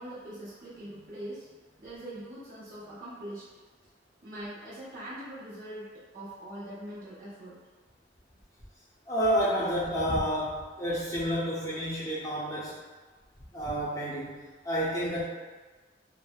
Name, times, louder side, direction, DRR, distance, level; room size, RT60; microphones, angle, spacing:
voice 1, 0.0-1.5 1.8-3.5 4.2-5.9 6.1-7.6, right 1 dB, 50° right, -10 dB, 1.1 m, -42 dB
voice 2, 9.1-12.8 13.5-14.4 14.6-15.3, equal, 20° left, -9 dB, 0.6 m, -29 dB
3.1 x 2.0 x 2.3 m, 1.3 s
head